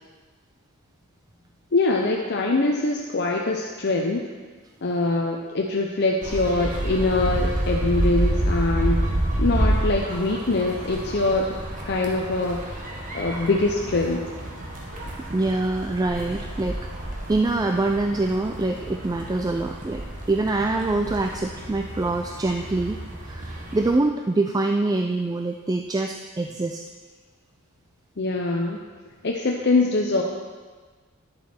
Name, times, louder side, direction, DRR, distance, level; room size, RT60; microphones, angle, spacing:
voice 1, 1.7-4.2 4.8-9.0 9.4-11.5 11.9-12.7 13.1-14.3 28.2-28.8 29.2-30.2, left 2 dB, 50° left, 0 dB, 0.7 m, -23 dB
sound 1, 6.2-23.9, right 1 dB, 35° right, 1.3 m, -29 dB
voice 2, 15.3-16.8 17.3-20.0 20.3-26.8, right 2 dB, 15° right, 4 dB, 0.3 m, -25 dB
10.5 x 7.3 x 4.4 m, 1.4 s
head